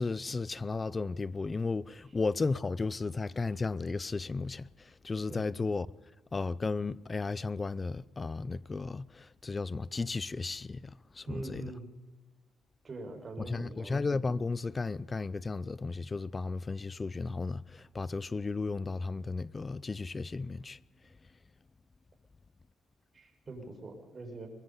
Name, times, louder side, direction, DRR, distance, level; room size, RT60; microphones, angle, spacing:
voice 1, 0.0-5.9 6.3-11.7 13.5-20.8, left 3 dB, 30° left, 0.6 m, -34 dB
voice 2, 11.3-11.9 12.8-13.9 23.1-24.5, right 3 dB, 35° right, 5.9 m, -43 dB
22.5 x 21.0 x 5.6 m
cardioid pair, 90°, 0 cm